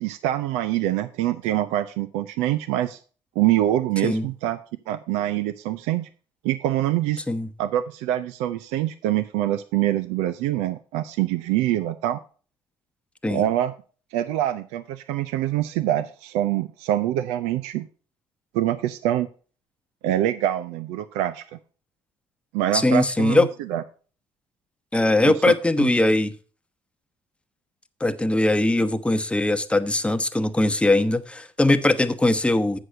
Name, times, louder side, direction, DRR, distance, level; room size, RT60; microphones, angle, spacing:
voice 1, 0.0-3.0 3.4-4.6 4.9-6.1 6.4-7.2 7.6-12.2 13.3-13.7 14.1-17.9 18.5-19.3 20.0-21.6 22.5-23.8 25.2-25.9, right 13 dB, 90° right, 12 dB, 0.4 m, -25 dB
voice 2, 22.7-23.5 24.9-26.3 28.0-32.8, left 2 dB, 10° left, 10 dB, 0.9 m, -21 dB
7.9 x 6.4 x 5.4 m, 0.38 s
supercardioid pair, 65°, 11 cm